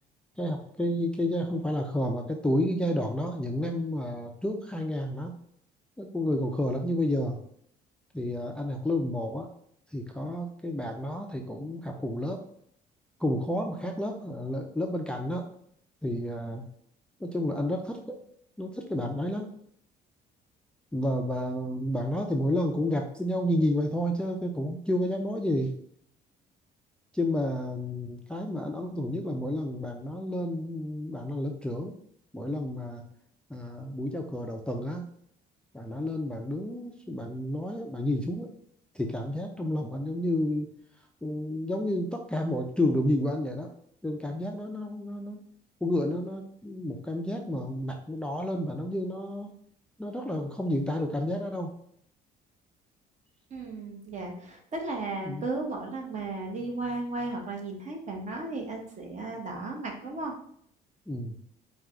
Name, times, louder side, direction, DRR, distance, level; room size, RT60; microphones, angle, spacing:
voice 1, 0.4-5.4 6.0-7.4 8.1-9.5 9.9-12.4 13.2-15.5 16.0-16.6 17.2-18.2 18.6-19.5 20.9-25.7 27.1-32.0 32.3-33.0 33.5-35.1 35.7-38.5 38.9-40.7 41.2-43.7 44.0-45.4 45.8-49.5 50.0-51.7 55.2-55.5 61.1-61.4, left 1 dB, 5° left, 2 dB, 0.4 m, -30 dB
voice 2, 53.5-60.3, right 3 dB, 45° right, 2 dB, 1.1 m, -35 dB
4.5 x 2.3 x 3.6 m, 0.66 s
cardioid pair, 110°, 17 cm